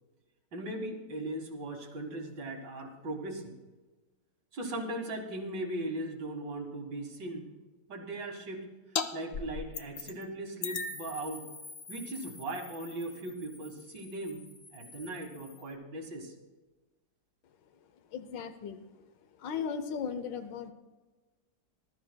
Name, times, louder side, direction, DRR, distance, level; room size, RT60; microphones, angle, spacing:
voice 1, 0.5-3.5 4.5-7.4 7.9-8.6 9.1-11.5 11.9-16.3, right 1 dB, 85° right, 2 dB, 2.4 m, -38 dB
sound 1, 9.0-9.1 9.3-10.2 10.6-15.7, left 5 dB, 55° left, 0.7 m, -40 dB
voice 2, 18.1-18.9 19.4-20.7, left 6 dB, 90° left, 9 dB, 1.5 m, -36 dB
20.0 x 12.5 x 2.3 m, 1.2 s
omnidirectional pair, 1.9 m